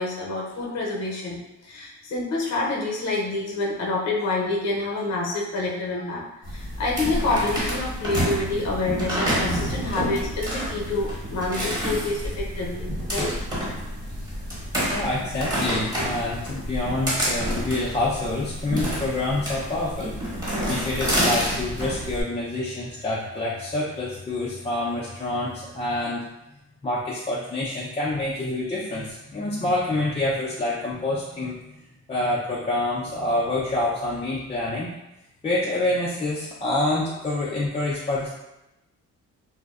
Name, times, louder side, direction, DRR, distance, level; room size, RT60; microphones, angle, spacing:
voice 1, 0.0-1.4 1.6-13.3, left 2 dB, 60° left, -2 dB, 0.7 m, -27 dB
sound 1, 6.4-22.2, equal, 15° right, 1.1 m, -28 dB
sound 2, 9.9-26.0, left 1 dB, 50° right, 0.6 m, -46 dB
voice 2, 14.9-26.2 26.8-31.6 32.1-34.9 35.4-38.3, left 2 dB, 20° left, -7 dB, 0.4 m, -27 dB
2.6 x 2.0 x 2.3 m, 0.95 s
cardioid pair, 90°, 30 cm